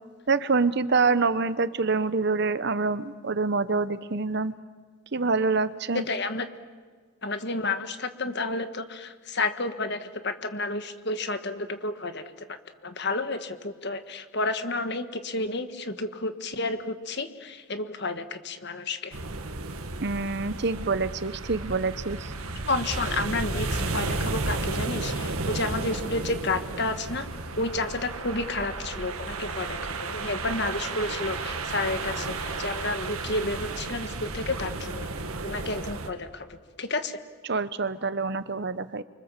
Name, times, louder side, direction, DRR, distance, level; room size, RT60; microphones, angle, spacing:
voice 1, 0.3-4.5 5.1-6.0 20.0-22.3 37.4-39.0, right 4 dB, 50° right, 14 dB, 0.9 m, -26 dB
voice 2, 5.9-6.5 7.2-12.5 12.8-19.2 22.7-27.3 27.6-35.1 35.4-37.2, left 2 dB, 50° left, 9 dB, 1.6 m, -31 dB
sound 1, 19.1-36.1, right 3 dB, 80° right, 1.9 m, -33 dB
30.0 x 24.5 x 7.4 m, 1.6 s
head